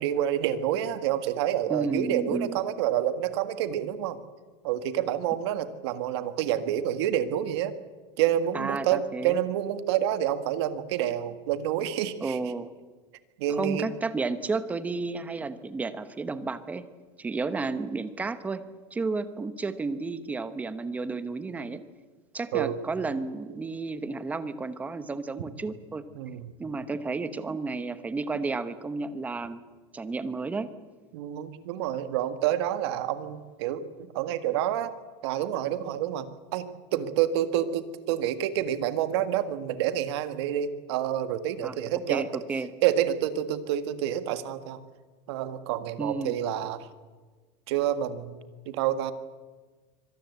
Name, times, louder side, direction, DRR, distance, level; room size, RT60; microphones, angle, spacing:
voice 1, 0.0-4.2 4.6-7.7 8.2-12.4 13.4-13.9 22.5-22.7 26.1-26.5 31.1-34.9 35.2-36.3 36.5-42.4 42.8-44.8 45.3-46.9 47.7-48.4 48.6-49.1, right 11 dB, 60° right, 11 dB, 1.8 m, -28 dB
voice 2, 1.7-2.5 8.5-9.4 12.2-12.7 13.6-16.9 17.2-18.6 18.9-21.8 22.3-26.0 26.6-29.6 29.9-30.7 41.6-41.7 42.1-42.7 46.0-46.3, right 3 dB, 10° right, 12 dB, 1.0 m, -32 dB
25.0 x 18.5 x 8.2 m, 1.4 s
supercardioid pair, 170°, 16 cm